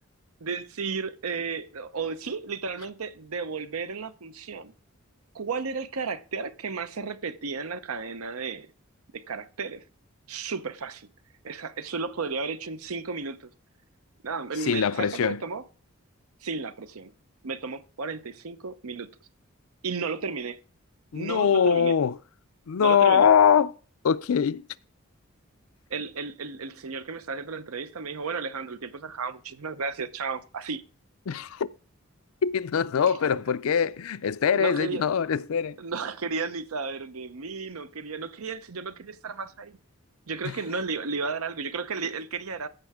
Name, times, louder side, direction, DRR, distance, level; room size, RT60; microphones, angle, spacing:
voice 1, 0.4-4.7 5.3-8.7 9.1-9.8 10.3-11.1 11.4-13.5 14.2-15.6 16.4-17.1 17.4-19.1 19.8-20.6 21.1-21.9 22.8-23.3 25.9-30.8 33.1-33.3 34.5-35.0 35.8-39.8 40.3-42.7, right 4 dB, 85° right, 0.8 m, -33 dB
voice 2, 14.6-15.4 21.1-22.2 22.7-23.7 24.0-24.6 31.3-31.7 32.4-35.8 40.5-40.6, left 7 dB, 80° left, 0.4 m, -22 dB
15.0 x 5.7 x 3.6 m
head